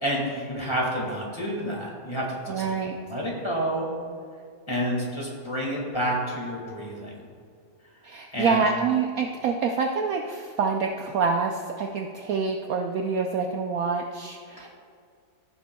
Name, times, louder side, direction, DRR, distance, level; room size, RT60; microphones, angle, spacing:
voice 1, 0.0-2.6 3.1-3.9 4.7-7.3 8.3-8.6, equal, 15° left, -3 dB, 1.7 m, -29 dB
voice 2, 2.5-3.0 8.0-14.7, right 5 dB, 70° right, 3 dB, 0.9 m, -26 dB
15.5 x 7.3 x 2.3 m, 2.3 s
omnidirectional pair, 1.8 m